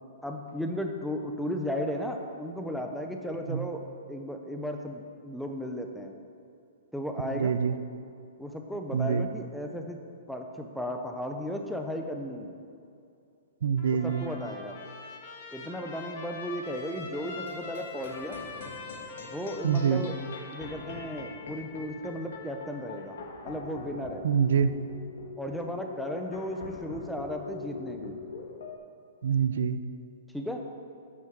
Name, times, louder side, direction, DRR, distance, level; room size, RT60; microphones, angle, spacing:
voice 1, 0.2-3.8 4.1-6.1 6.9-7.5 8.4-10.0 10.3-12.6 14.0-14.8 15.5-18.4 19.2-20.2 20.5-23.2 23.4-24.3 25.4-28.2 30.3-30.6, equal, ahead, 3 dB, 0.4 m, -35 dB
voice 2, 7.3-7.7 8.9-9.2 13.6-14.3 19.6-20.0 24.2-24.7 29.2-29.8, right 7 dB, 60° right, 11 dB, 0.5 m, -25 dB
Trumpet, 13.8-21.4, left 4 dB, 30° left, 1.0 m, -44 dB
sound 1, 17.2-28.8, left 4 dB, 60° left, 1.3 m, -43 dB
9.1 x 6.1 x 5.9 m, 2.4 s
hypercardioid pair, 180°, 0 cm